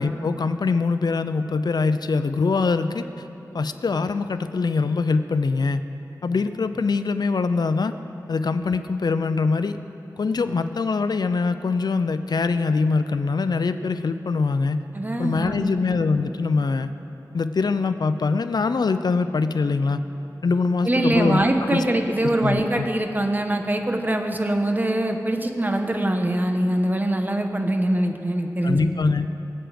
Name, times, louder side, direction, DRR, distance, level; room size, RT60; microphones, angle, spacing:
voice 1, 0.0-3.1 3.5-5.8 6.2-8.0 8.3-9.8 10.2-14.8 15.2-16.9 17.3-20.0 20.4-21.8 22.2-22.9 28.6-29.3, left 4 dB, 75° left, 10 dB, 0.6 m, -23 dB
voice 2, 14.9-15.7 20.8-28.9, right 1 dB, 25° right, 5 dB, 1.2 m, -23 dB
22.5 x 7.7 x 5.1 m, 2.8 s
wide cardioid pair, 55°, 7 cm